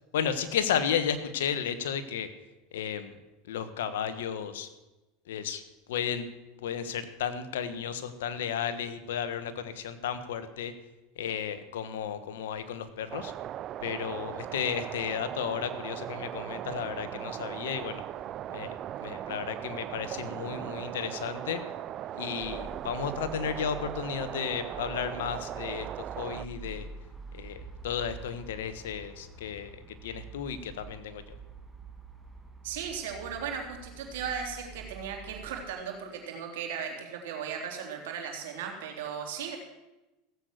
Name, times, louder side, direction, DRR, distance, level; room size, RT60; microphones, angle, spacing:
voice 1, 0.1-2.3 2.7-3.1 3.5-4.7 5.3-5.6 5.9-6.2 6.6-10.7 11.2-13.3 13.8-18.0 18.5-21.6 22.1-25.9 26.2-26.9 27.3-29.7 30.0-31.2, left 8 dB, 85° left, 11 dB, 1.3 m, -33 dB
sound 1, 13.1-26.4, right 12 dB, 45° right, 0.4 m, -38 dB
sound 2, 22.4-35.7, right 4 dB, 5° right, 1.9 m, -47 dB
voice 2, 32.6-39.6, right 7 dB, 80° right, 2 dB, 3.4 m, -36 dB
16.0 x 8.2 x 6.6 m, 1.0 s
supercardioid pair, 110°, 0 cm